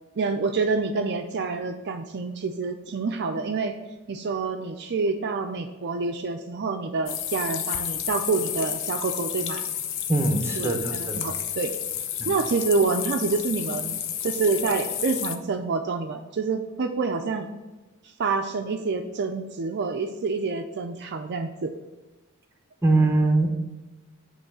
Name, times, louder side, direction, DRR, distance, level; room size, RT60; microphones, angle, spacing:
voice 1, 0.2-3.8 4.1-9.6 10.6-11.7 12.3-17.5 18.2-21.7, right 4 dB, 50° right, 5 dB, 0.5 m, -27 dB
sound 1, 7.1-15.4, left 9 dB, 60° left, 0.6 m, -31 dB
voice 2, 10.1-11.3 12.2-12.3 22.8-23.5, right 2 dB, 10° right, 3 dB, 0.8 m, -22 dB
7.8 x 3.3 x 6.1 m, 1.1 s
head